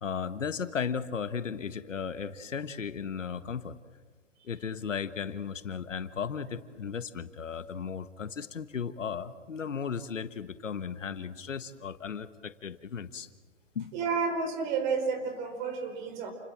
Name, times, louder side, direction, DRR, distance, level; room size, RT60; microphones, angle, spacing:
voice 1, 0.0-3.8 4.4-13.3 13.7-13.9, left 6 dB, 90° left, 12 dB, 1.5 m, -35 dB
voice 2, 13.9-16.3, right 5 dB, 40° right, 7 dB, 5.0 m, -31 dB
29.5 x 21.0 x 7.6 m, 1.4 s
hypercardioid pair, 140°, 37 cm